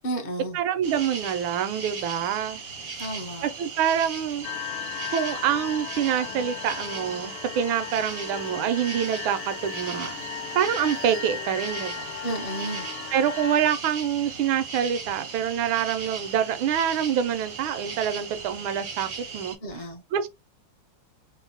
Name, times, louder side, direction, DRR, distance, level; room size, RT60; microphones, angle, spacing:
voice 1, 0.0-0.6 3.0-3.5 12.2-12.9 19.6-20.0, right 2 dB, 50° left, 0.5 m, -32 dB
voice 2, 0.5-2.6 3.4-4.5 5.1-10.2 10.5-12.1 13.1-19.6 20.1-20.3, right 9 dB, 85° right, 1.4 m, -26 dB
sound 1, 0.8-19.6, right 5 dB, 60° right, 0.6 m, -38 dB
sound 2, 4.4-13.6, left 9 dB, 80° left, 1.4 m, -36 dB
4.5 x 2.0 x 2.7 m
omnidirectional pair, 2.2 m